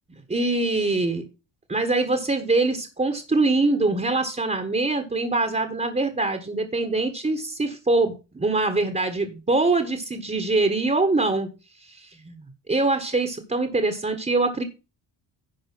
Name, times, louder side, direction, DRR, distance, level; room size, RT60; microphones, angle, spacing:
voice 1, 0.3-1.2 1.7-11.5 11.8-14.6, right 3 dB, 15° right, 6 dB, 1.5 m, -24 dB
11.0 x 4.8 x 6.1 m, 0.31 s
cardioid pair, 80°, 44 cm